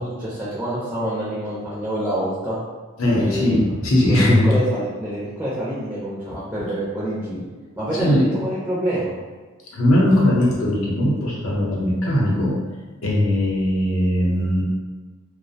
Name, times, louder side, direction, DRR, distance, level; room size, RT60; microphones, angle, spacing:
voice 1, 0.0-2.6 3.2-3.6 4.1-7.5 7.8-9.1, right 1 dB, 10° right, -9 dB, 0.4 m, -26 dB
voice 2, 3.0-4.5 8.0-8.2 9.7-12.5 13.0-14.6, left 1 dB, 75° left, -4 dB, 0.6 m, -19 dB
2.4 x 2.0 x 2.6 m, 1.3 s
head